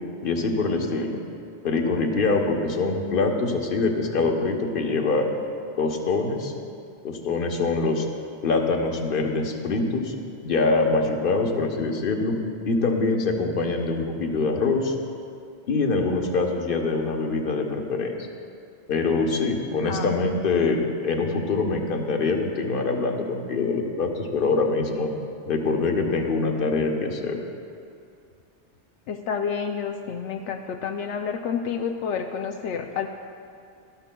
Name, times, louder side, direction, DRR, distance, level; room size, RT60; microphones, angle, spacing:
voice 1, 0.2-1.2 1.6-5.3 5.8-6.5 7.0-8.1 8.4-10.1 10.4-12.4 12.6-14.9 15.7-18.3 18.9-20.8 21.0-25.1 25.5-27.4, left 3 dB, 55° left, 2 dB, 1.1 m, -24 dB
voice 2, 29.1-33.1, left 6 dB, 80° left, 4 dB, 0.9 m, -29 dB
18.5 x 12.5 x 2.3 m, 2.4 s
omnidirectional pair, 1.2 m